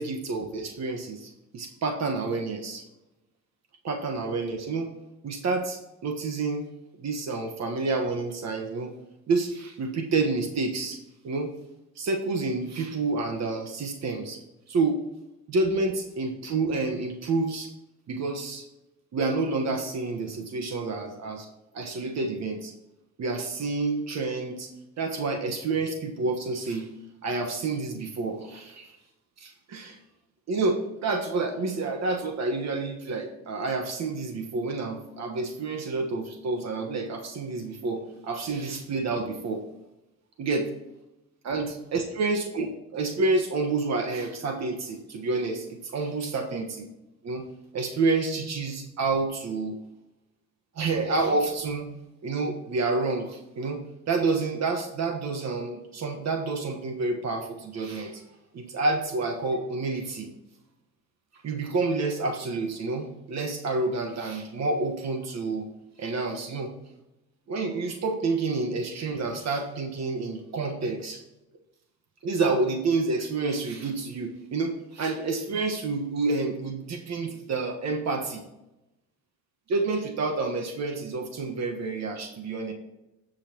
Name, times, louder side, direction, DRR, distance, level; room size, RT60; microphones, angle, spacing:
voice 1, 0.0-2.8 3.8-4.9 5.2-6.7 7.0-8.9 9.3-11.0 11.2-11.5 12.0-14.4 14.7-15.0 15.5-17.7 18.1-18.6 19.1-21.5 21.7-22.7 23.2-24.7 25.0-26.9 27.2-29.0 29.4-30.0 30.5-39.6 40.4-40.7 41.4-46.9 47.2-47.4 47.7-49.8 50.7-51.9 52.2-58.2 58.5-60.3 61.4-65.7 66.0-66.7 67.5-71.2 72.2-78.4 79.7-82.7, right 3 dB, 60° right, 4 dB, 1.3 m, -29 dB
15.0 x 5.7 x 2.9 m, 0.95 s
cardioid pair, 90°, 30 cm